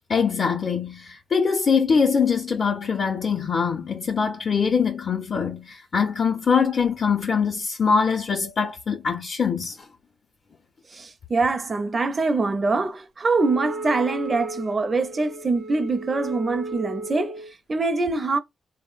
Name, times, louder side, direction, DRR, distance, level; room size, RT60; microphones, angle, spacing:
voice 1, 0.1-9.9, left 6 dB, 55° left, 0.5 m, -23 dB
voice 2, 10.9-18.4, right 3 dB, 35° right, 0.4 m, -24 dB
Wind instrument woodwind instrument, 13.4-17.5, right 2 dB, 75° right, 0.8 m, -35 dB
3.6 x 2.0 x 2.3 m
cardioid pair, 95°, 0 cm